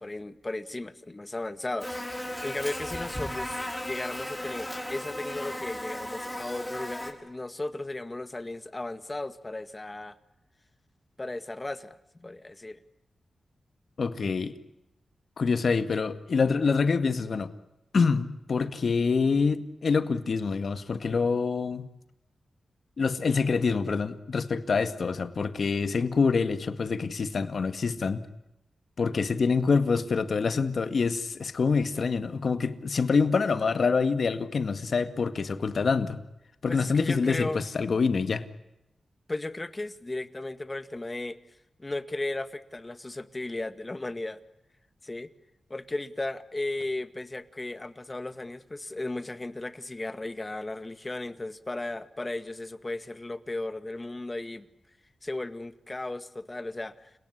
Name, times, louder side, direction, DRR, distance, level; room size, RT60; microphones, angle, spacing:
voice 1, 0.0-2.0 2.4-10.2 11.2-11.9 12.2-12.8 36.7-37.7 39.3-41.4 41.8-44.4 45.0-45.3 45.7-54.7 55.2-57.1, left 2 dB, 25° left, 12 dB, 2.0 m, -35 dB
Buzz, 1.8-7.1, left 1 dB, 10° left, 6.6 m, -36 dB
voice 2, 14.0-14.5 15.4-17.5 17.9-21.9 23.0-28.2 29.0-36.2 36.6-38.4, left 5 dB, 65° left, 11 dB, 1.9 m, -26 dB
30.0 x 18.0 x 10.0 m, 0.90 s
cardioid pair, 60°, 0 cm